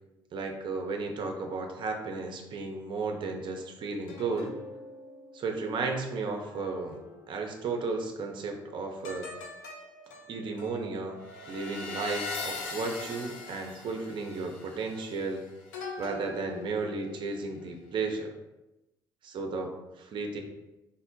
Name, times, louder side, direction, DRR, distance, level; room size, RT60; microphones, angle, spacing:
voice 1, 0.3-4.5 5.3-7.0 7.3-9.3 10.3-11.2 11.5-15.4 16.0-18.3 19.2-20.4, right 3 dB, 45° right, 3 dB, 0.5 m, -34 dB
sound 1, 4.1-7.7 9.0-17.6 18.0-18.3, left 3 dB, 70° left, 0.4 m, -42 dB
3.6 x 2.1 x 2.6 m, 1.0 s
figure-of-eight pair, 50°, 12 cm